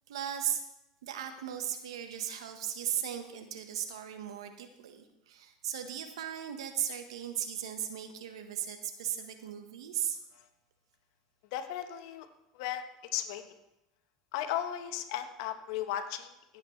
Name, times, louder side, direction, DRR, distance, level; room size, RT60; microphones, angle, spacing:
voice 1, 0.1-0.6 1.0-10.2, right 9 dB, 85° right, 7 dB, 1.3 m, -37 dB
voice 2, 11.5-12.3 12.5-13.5 14.3-16.6, left 11 dB, 70° left, 8 dB, 1.1 m, -36 dB
16.5 x 8.1 x 3.3 m, 0.90 s
hypercardioid pair, 90°, 3 cm